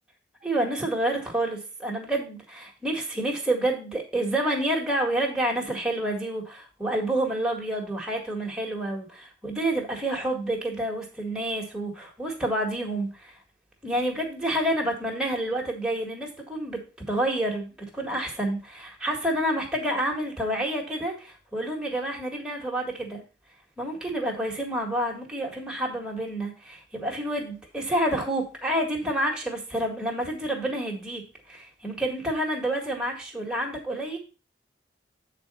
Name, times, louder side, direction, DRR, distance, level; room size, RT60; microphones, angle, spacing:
voice 1, 0.4-13.4 13.8-23.2 23.8-31.2 31.5-34.2, right 1 dB, 5° right, -1 dB, 1.8 m, -29 dB
8.8 x 4.2 x 5.5 m, 0.33 s
head